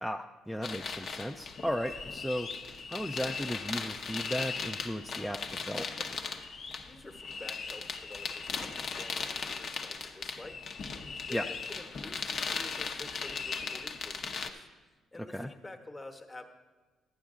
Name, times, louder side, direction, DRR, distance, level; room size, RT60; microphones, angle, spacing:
voice 1, 0.0-2.5 2.9-6.2 11.3-11.5 15.3-15.5, equal, ahead, 3 dB, 0.4 m, -35 dB
sound 1, 0.6-14.5, left 5 dB, 55° left, 0.8 m, -38 dB
voice 2, 6.8-10.6 10.8-16.5, left 2 dB, 25° left, 4 dB, 1.1 m, -49 dB
11.5 x 9.2 x 3.7 m, 1.3 s
cardioid pair, 85°, 0 cm